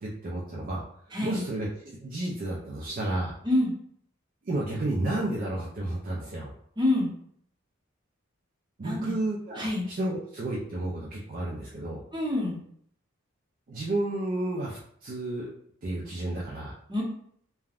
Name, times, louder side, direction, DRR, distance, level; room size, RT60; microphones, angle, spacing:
voice 1, 0.0-0.8 1.2-3.4 4.4-6.5 8.8-12.0 13.7-15.5 15.8-16.8, right 1 dB, 45° right, -4 dB, 0.4 m, -31 dB
voice 2, 1.1-1.4 3.4-3.7 6.8-7.1 8.8-9.1 9.6-9.9 12.1-12.6 16.9-17.0, left 1 dB, 20° right, -3 dB, 0.8 m, -26 dB
3.3 x 2.2 x 2.4 m, 0.65 s
head